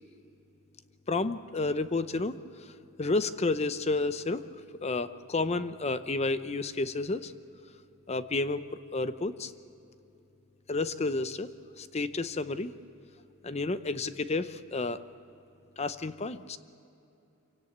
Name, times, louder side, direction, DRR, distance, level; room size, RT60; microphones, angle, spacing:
voice 1, 1.1-2.3 3.0-4.4 4.8-7.3 8.1-8.6 8.9-9.5 10.7-11.5 11.8-12.7 13.4-15.0 15.8-16.6, left 3 dB, 30° left, 12 dB, 0.7 m, -30 dB
25.5 x 17.0 x 8.7 m, 2.9 s
head